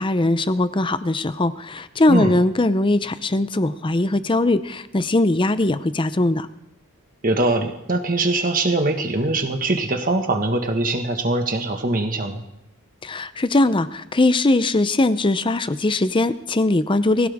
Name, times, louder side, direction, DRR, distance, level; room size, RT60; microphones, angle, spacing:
voice 1, 0.0-6.5 13.0-17.3, left 2 dB, 20° left, 13 dB, 0.6 m, -20 dB
voice 2, 7.2-12.4, right 2 dB, 40° right, 5 dB, 1.6 m, -22 dB
20.0 x 16.5 x 3.6 m, 0.86 s
head